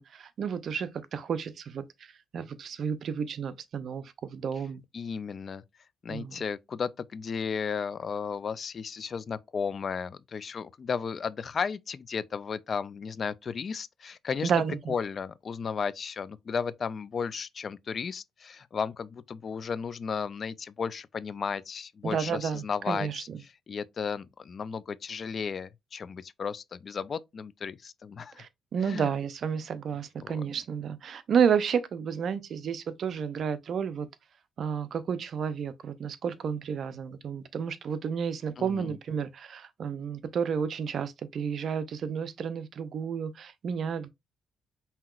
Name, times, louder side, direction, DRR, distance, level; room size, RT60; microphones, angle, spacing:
voice 1, 0.0-1.8 2.3-4.8 6.1-6.4 14.4-14.9 22.0-23.4 28.4-34.1 34.6-44.1, right 7 dB, 60° right, 0.5 m, -31 dB
voice 2, 4.9-5.6 6.0-14.5 14.9-23.3 23.7-28.4 28.8-29.1 30.2-30.5 38.6-39.0, left 6 dB, 45° left, 0.3 m, -34 dB
5.6 x 2.8 x 2.4 m
cardioid pair, 90°, 0 cm